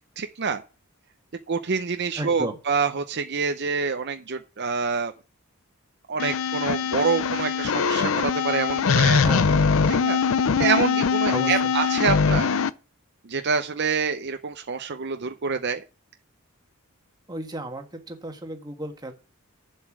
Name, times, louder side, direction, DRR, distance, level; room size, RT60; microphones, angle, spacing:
voice 1, 0.2-0.6 1.5-5.1 6.1-9.2 9.9-10.2 10.6-12.5 13.2-15.8, right 5 dB, 50° right, 7 dB, 0.7 m, -26 dB
voice 2, 2.2-2.6 9.1-9.6 11.3-11.7 17.3-19.1, right 1 dB, 20° right, 4 dB, 1.5 m, -33 dB
sound 1, 6.2-12.7, left 5 dB, 65° left, 0.5 m, -22 dB
8.4 x 7.5 x 6.1 m, 0.34 s
head